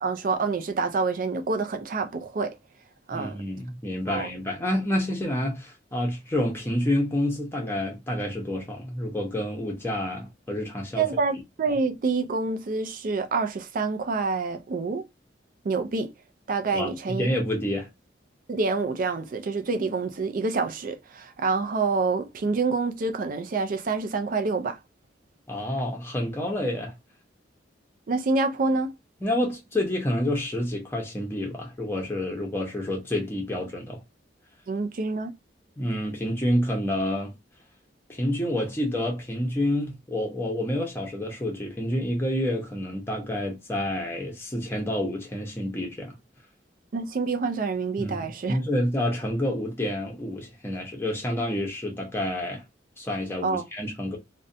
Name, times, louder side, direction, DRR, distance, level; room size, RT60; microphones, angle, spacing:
voice 1, 0.0-2.6 3.1-3.4 4.1-4.3 11.0-15.0 15.6-16.1 16.5-17.3 18.5-24.8 28.1-28.9 34.7-35.3 46.9-48.6 53.4-53.6, right 4 dB, 50° right, 0.4 m, -27 dB
voice 2, 3.1-11.1 16.7-17.9 25.5-26.9 29.2-34.0 35.8-37.3 38.1-46.2 48.0-52.6 53.0-54.2, left 1 dB, 15° left, 0.7 m, -28 dB
2.6 x 2.1 x 2.5 m
head